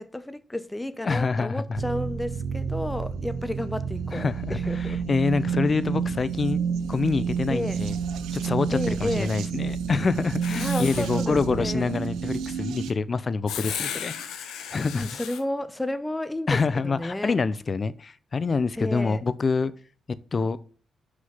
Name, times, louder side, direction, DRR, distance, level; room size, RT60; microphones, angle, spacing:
voice 1, 0.0-5.0 7.5-7.8 8.7-9.3 10.6-11.9 14.9-17.4 18.8-19.2, left 1 dB, 10° left, 0.8 m, -31 dB
voice 2, 1.0-1.8 4.1-8.0 8.3-14.1 14.7-15.1 16.5-19.7 20.3-20.6, left 4 dB, 40° left, 0.6 m, -26 dB
sound 1, 1.8-12.9, right 7 dB, 85° right, 0.8 m, -30 dB
Writing, 10.4-11.2 13.5-15.4, left 8 dB, 85° left, 1.1 m, -35 dB
6.5 x 5.6 x 5.5 m
cardioid pair, 75°, 0 cm